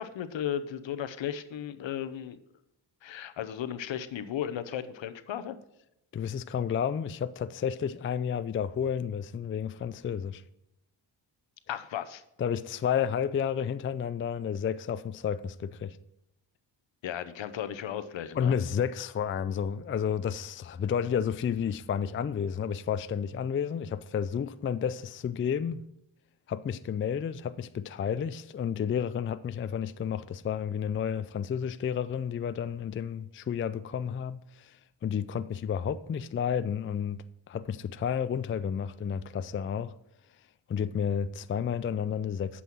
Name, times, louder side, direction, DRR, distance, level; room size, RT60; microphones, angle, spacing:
voice 1, 0.0-2.4 3.0-5.6 11.7-12.2 17.0-18.5, left 10 dB, 70° left, 0.8 m, -35 dB
voice 2, 6.1-10.4 12.4-16.0 18.3-25.8 26.5-39.9 40.7-42.6, left 8 dB, 30° left, 0.4 m, -31 dB
8.5 x 5.6 x 6.0 m
cardioid pair, 80°, 48 cm